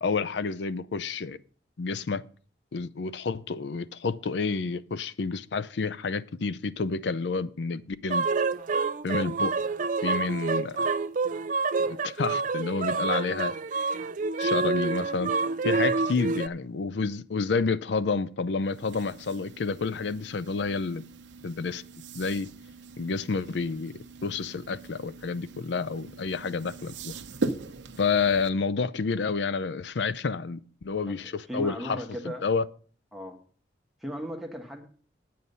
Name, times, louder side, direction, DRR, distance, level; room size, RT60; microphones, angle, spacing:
voice 1, 0.0-1.4 1.8-2.2 2.7-8.3 9.0-9.6 10.0-10.9 11.9-13.5 14.4-15.3 15.6-21.0 21.4-21.8 22.1-22.5 23.0-23.9 24.2-27.1 28.0-32.0 32.4-32.6, left 4 dB, 70° left, 0.5 m, -29 dB
sound 1, 8.1-16.5, right 4 dB, 45° right, 0.4 m, -27 dB
sound 2, 18.6-28.5, right 3 dB, 85° right, 0.8 m, -40 dB
voice 2, 31.1-32.5 33.1-33.4 34.0-34.9, equal, ahead, 1.4 m, -37 dB
9.5 x 8.5 x 5.4 m
head